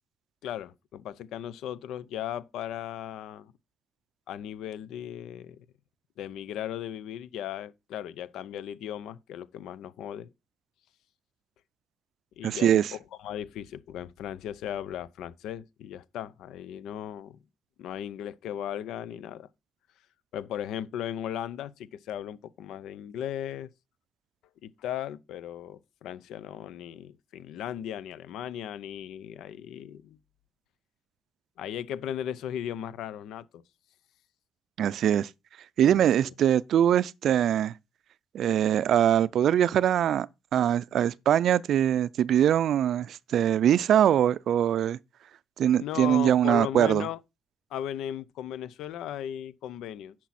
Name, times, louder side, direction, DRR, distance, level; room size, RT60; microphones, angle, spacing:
voice 1, 0.4-3.5 4.3-5.7 6.2-10.3 12.4-17.4 17.8-19.5 20.3-23.7 24.6-30.2 31.6-33.6 35.8-36.3 45.8-47.2 47.7-50.1, left 10 dB, 85° left, 0.6 m, -37 dB
voice 2, 12.4-12.9 34.8-35.3 35.8-37.7 38.3-40.3 40.5-45.0 45.6-47.1, right 10 dB, 70° right, 0.4 m, -23 dB
10.0 x 6.1 x 4.2 m
cardioid pair, 90°, 0 cm